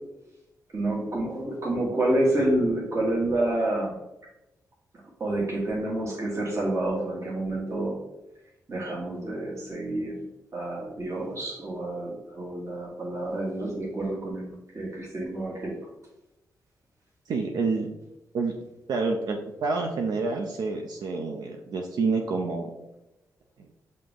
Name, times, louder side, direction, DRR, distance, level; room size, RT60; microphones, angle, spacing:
voice 1, 0.7-4.0 5.2-8.0 8.7-10.2 10.5-15.8, right 1 dB, 45° right, -4 dB, 1.3 m, -28 dB
voice 2, 17.3-17.9 18.3-18.6 18.9-22.7, right 4 dB, 75° right, 2 dB, 0.4 m, -28 dB
5.7 x 2.6 x 3.4 m, 0.94 s
cardioid pair, 55°, 7 cm